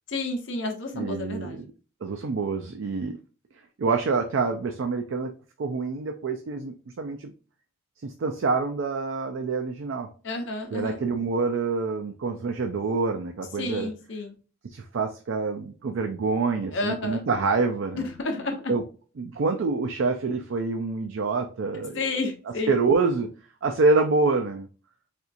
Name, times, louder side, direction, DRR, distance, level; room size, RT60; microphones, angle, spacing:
voice 1, 0.1-1.7 10.2-11.0 13.6-14.3 16.7-17.3 18.0-18.7 21.9-22.8, left 2 dB, 55° left, 3 dB, 0.8 m, -31 dB
voice 2, 0.9-1.7 2.0-3.2 3.8-5.3 5.6-7.3 8.0-10.1 10.7-13.9 14.7-18.1 18.7-18.8 19.2-22.0 22.7-23.3 23.6-24.7, right 4 dB, 65° right, 5 dB, 0.4 m, -26 dB
4.3 x 2.4 x 2.5 m, 0.36 s
head